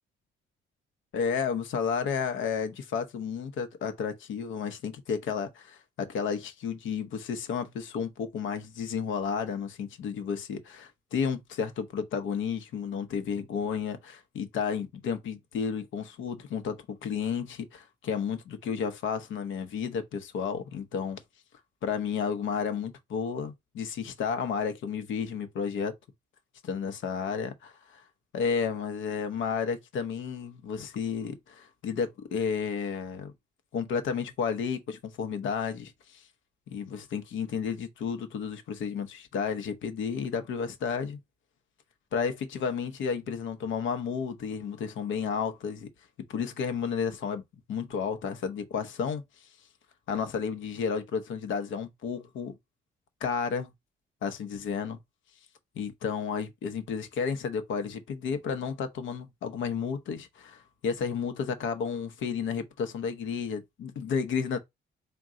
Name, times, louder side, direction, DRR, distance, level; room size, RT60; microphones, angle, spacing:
voice 1, 1.1-21.2 21.8-25.9 26.6-28.0 28.3-33.3 33.7-36.2 36.7-41.2 42.1-45.9 46.3-47.4 47.7-49.2 50.1-52.5 53.2-53.7 54.2-55.0 55.8-64.6, left 6 dB, 75° left, 0.8 m, -32 dB
3.8 x 2.3 x 3.7 m
cardioid pair, 90°, 20 cm